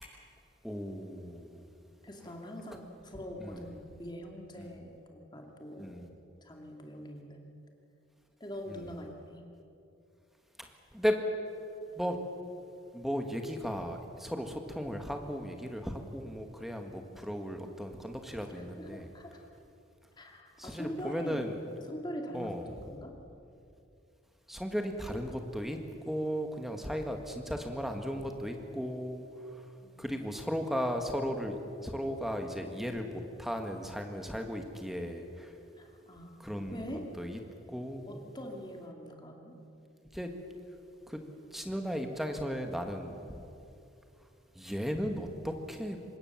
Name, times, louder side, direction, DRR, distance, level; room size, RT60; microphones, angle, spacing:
voice 1, 0.6-1.7 3.4-3.7 4.6-4.8 5.8-6.1 8.7-8.9 10.6-11.2 11.9-12.2 12.9-19.1 20.6-21.5 22.3-22.9 24.5-25.8 26.1-29.6 30.0-35.6 36.4-37.4 37.7-38.2 40.1-40.3 41.1-41.2 41.5-43.4 44.6-46.0, equal, ahead, 4 dB, 1.7 m, -36 dB
voice 2, 2.0-6.1 6.4-7.5 8.4-9.4 18.6-19.4 20.2-21.5 21.9-23.1 29.8-30.2 35.8-37.1 38.0-39.6, equal, 20° left, 2 dB, 2.5 m, -43 dB
25.0 x 20.5 x 7.3 m, 2.7 s
head